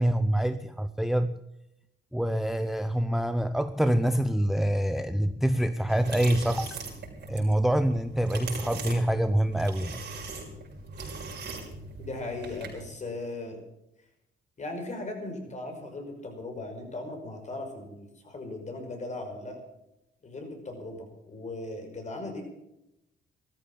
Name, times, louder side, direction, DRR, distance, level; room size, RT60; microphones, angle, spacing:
voice 1, 0.0-1.4 2.1-6.8 7.3-10.0, right 1 dB, ahead, 12 dB, 0.6 m, -26 dB
sound 1, 5.9-12.9, right 3 dB, 60° right, 6.0 m, -40 dB
voice 2, 12.0-13.6 14.6-19.6 20.2-22.4, left 2 dB, 35° left, 4 dB, 5.6 m, -38 dB
14.0 x 13.5 x 7.2 m, 0.85 s
cardioid pair, 90°, 20 cm